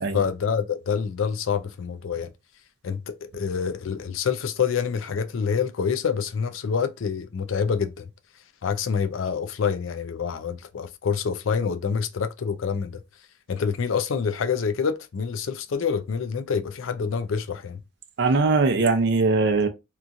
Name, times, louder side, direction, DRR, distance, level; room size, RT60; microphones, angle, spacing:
voice 1, 0.1-2.3 2.8-8.1 8.6-13.0 13.5-17.8, left 6 dB, 70° left, 0.4 m, -27 dB
voice 2, 18.2-19.7, right 3 dB, 55° right, 0.5 m, -21 dB
2.9 x 2.4 x 2.5 m
head